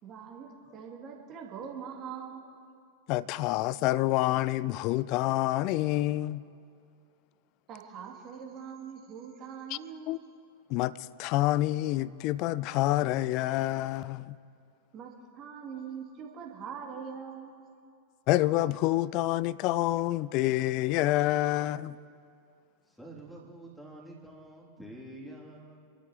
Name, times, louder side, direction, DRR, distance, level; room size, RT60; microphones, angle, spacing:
voice 1, 0.0-2.7 7.7-10.2 14.9-17.6, right 7 dB, 35° right, 2.6 m, -43 dB
voice 2, 3.1-6.4 10.1-10.2 10.7-10.9 11.2-14.4 18.3-22.0, left 16 dB, 40° left, 0.4 m, -27 dB
voice 3, 22.9-25.9, right 1 dB, ahead, 3.0 m, -47 dB
29.0 x 12.5 x 3.1 m
figure-of-eight pair, 90°, 0 cm